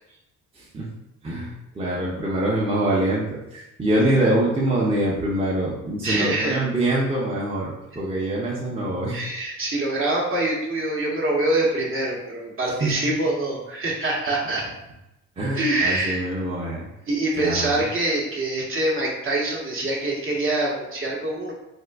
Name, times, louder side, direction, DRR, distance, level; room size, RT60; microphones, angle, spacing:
voice 1, 0.6-0.9 1.2-7.7 8.0-9.2 12.8-12.9 15.4-16.9 17.4-17.7, right 1 dB, 20° right, -5 dB, 0.6 m, -24 dB
voice 2, 6.0-6.6 9.1-14.6 15.5-16.2 17.1-21.5, right 2 dB, 45° right, -2 dB, 0.9 m, -25 dB
3.6 x 2.5 x 2.2 m, 0.91 s
cardioid pair, 90°, 30 cm